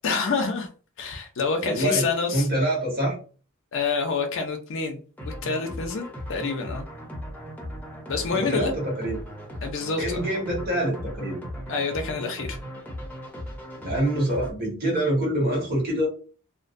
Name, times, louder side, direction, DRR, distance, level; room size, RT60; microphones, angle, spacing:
voice 1, 0.0-0.7 1.0-2.5 3.7-5.0 5.4-6.9 8.1-8.7 9.6-10.3 11.7-12.6, left 4 dB, 60° left, 4 dB, 0.5 m, -27 dB
voice 2, 1.6-3.2 8.3-9.2 10.0-11.4 13.8-16.1, right 1 dB, 45° right, -3 dB, 1.2 m, -25 dB
sound 1, 5.2-14.5, equal, 10° left, 0.6 m, -37 dB
2.5 x 2.1 x 2.5 m, 0.39 s
head